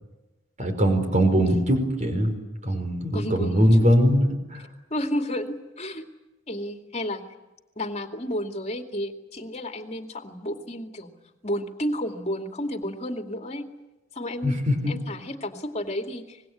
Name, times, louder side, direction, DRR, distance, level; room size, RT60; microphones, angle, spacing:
voice 1, 0.6-2.4 2.6-4.6 14.4-14.9, equal, 40° right, 6 dB, 4.7 m, -21 dB
voice 2, 1.2-1.6 3.1-3.6 4.9-6.0 6.5-7.2 7.8-11.1 11.4-13.7 14.1-16.5, equal, 35° left, 5 dB, 2.5 m, -32 dB
25.5 x 20.5 x 9.9 m, 1.0 s
head